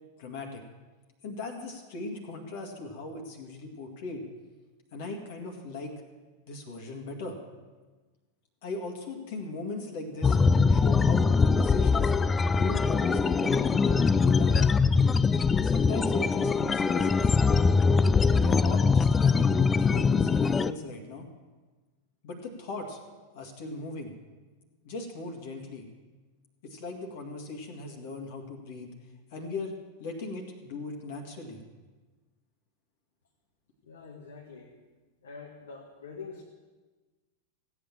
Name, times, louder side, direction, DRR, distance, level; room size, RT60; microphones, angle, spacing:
voice 1, 0.2-0.6 1.2-4.2 4.9-5.9 6.5-7.4 8.6-10.4 10.7-12.1 12.5-14.6 15.6-17.4 18.3-21.3 22.2-23.0 23.3-24.1 24.8-25.9 26.6-28.9 29.3-31.6, left 3 dB, 50° left, 3 dB, 2.0 m, -38 dB
sound 1, 10.2-20.7, left 5 dB, 15° left, 0.3 m, -23 dB
voice 2, 33.8-34.7 35.2-36.4, left 5 dB, 65° left, 1 dB, 1.6 m, -45 dB
16.0 x 8.6 x 7.3 m, 1.3 s
figure-of-eight pair, 90°, 0 cm